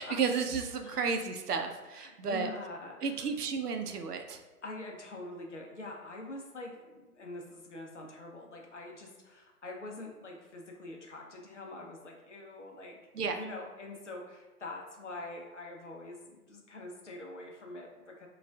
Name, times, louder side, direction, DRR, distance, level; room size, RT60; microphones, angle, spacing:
voice 1, 0.0-2.5 3.0-4.4 13.1-13.4, right 5 dB, 80° right, 5 dB, 0.6 m, -32 dB
voice 2, 1.9-3.2 4.6-13.0 13.4-18.3, left 2 dB, 50° left, 0 dB, 0.6 m, -45 dB
4.8 x 2.4 x 2.3 m, 1.2 s
hypercardioid pair, 165°, 46 cm